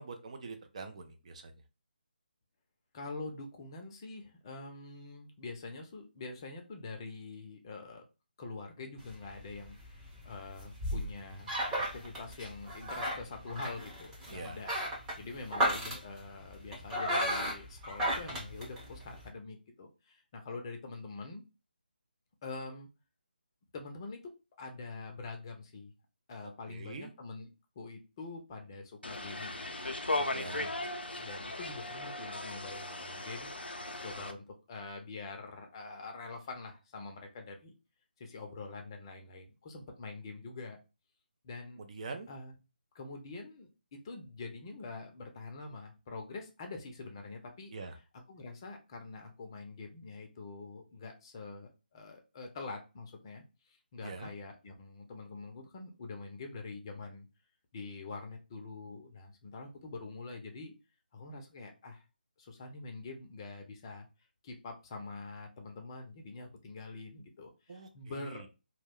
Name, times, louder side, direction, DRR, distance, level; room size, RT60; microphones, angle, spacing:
voice 1, 0.0-1.5 14.3-14.6 26.7-27.1 30.3-30.7 41.8-42.3 47.7-47.9 54.0-54.3 67.7-68.5, right 4 dB, 40° right, 5 dB, 0.4 m, -44 dB
voice 2, 2.9-8.0 8.4-11.5 11.9-14.7 15.2-21.4 22.4-22.9 23.7-24.2 24.6-25.9 26.3-27.5 27.8-29.7 30.2-33.5 34.0-37.7 38.2-40.8 41.4-41.8 42.3-42.5 42.9-47.7 48.3-57.3 57.7-60.7 61.1-62.0 62.4-64.1 64.4-68.5, left 3 dB, 30° left, 3 dB, 0.5 m, -45 dB
sound 1, 9.0-19.3, equal, 10° right, 0.7 m, -36 dB
sound 2, 29.0-34.3, left 2 dB, 90° left, 0.4 m, -37 dB
2.3 x 2.1 x 3.4 m, 0.29 s
figure-of-eight pair, 155°, 5 cm